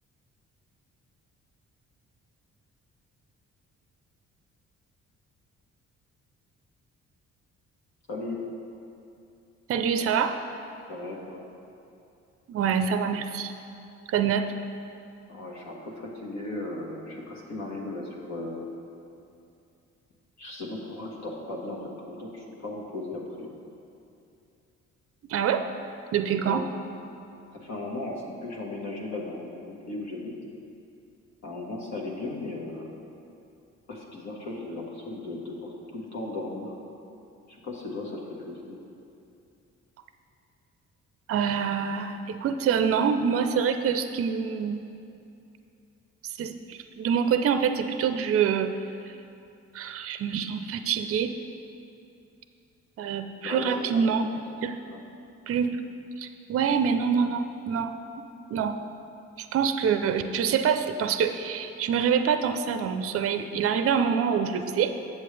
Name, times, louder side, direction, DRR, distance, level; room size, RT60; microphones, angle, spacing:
voice 1, 8.1-8.4 10.9-11.4 15.3-18.7 20.4-23.5 26.4-26.6 27.5-30.4 31.4-32.9 33.9-36.7 37.5-38.8 53.4-54.1 54.9-55.0, left 2 dB, 60° left, -3 dB, 1.4 m, -36 dB
voice 2, 9.7-10.4 12.5-13.5 14.1-14.5 25.2-25.7 26.1-26.7 41.3-44.9 46.2-49.2 49.7-51.4 53.0-54.3 54.6-54.8 55.5-55.8 56.2-57.9 58.5-58.8 59.4-65.1, right 7 dB, 45° right, 8 dB, 0.5 m, -26 dB
7.6 x 7.2 x 3.3 m, 2.6 s
supercardioid pair, 65°, 31 cm